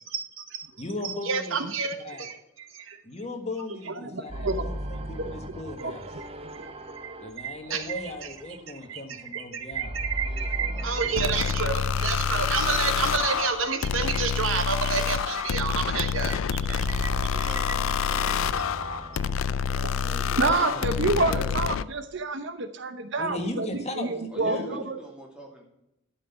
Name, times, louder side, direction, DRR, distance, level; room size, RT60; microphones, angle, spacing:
voice 1, 0.1-0.6 1.0-2.4 2.7-3.0 6.9-7.0 7.4-8.0 8.9-17.8 18.0-18.2 18.9-19.0, right 5 dB, 85° right, 8 dB, 1.3 m, -30 dB
voice 2, 0.8-1.6 2.0-2.3 3.0-6.1 7.2-9.9 19.8-21.4 23.2-24.8, left 1 dB, 35° left, 5 dB, 1.5 m, -37 dB
voice 3, 4.0-5.3 5.8-5.9 6.6-6.7 19.8-19.9 20.3-23.7 24.0-25.0, right 3 dB, 60° right, 10 dB, 0.8 m, -28 dB
sound 1, 4.3-9.3 9.6-14.9 15.7-21.7, right 1 dB, 30° right, 0.8 m, -38 dB
voice 4, 10.2-11.9 17.4-18.7 21.2-21.9 24.3-25.6, equal, 5° right, -2 dB, 2.6 m, -45 dB
sound 2, 11.2-21.8, left 7 dB, 80° left, 0.4 m, -27 dB
11.5 x 5.8 x 7.0 m, 0.86 s
head